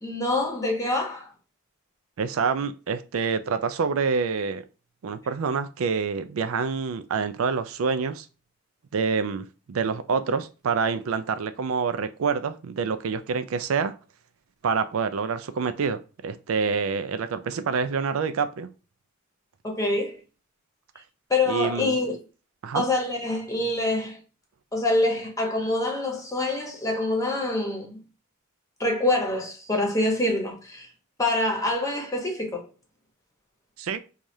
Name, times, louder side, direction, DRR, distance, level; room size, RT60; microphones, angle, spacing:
voice 1, 0.0-1.3 19.6-20.2 21.3-22.2 22.7-24.2 24.7-28.0 28.8-30.9 31.2-32.7, left 2 dB, 15° left, 1.0 m, -25 dB
voice 2, 2.2-4.6 5.0-8.3 8.9-13.9 14.6-18.7 21.5-21.9 22.6-22.8 33.8-34.0, right 5 dB, 85° right, 0.4 m, -27 dB
4.7 x 2.4 x 2.7 m
head